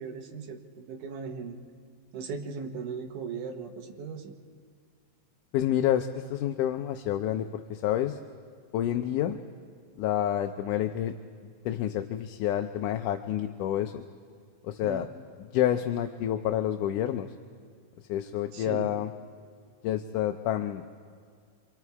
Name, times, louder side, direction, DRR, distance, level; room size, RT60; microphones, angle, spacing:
voice 1, 0.0-1.6 2.1-4.4 14.8-15.1 18.5-18.9, right 5 dB, 75° right, 2 dB, 2.8 m, -38 dB
voice 2, 5.5-8.2 8.7-9.4 10.0-11.1 11.7-14.0 14.6-15.1 15.5-17.3 18.1-19.1 19.8-20.9, left 11 dB, 80° left, 6 dB, 2.1 m, -28 dB
27.5 x 25.0 x 4.7 m, 2.1 s
omnidirectional pair, 3.8 m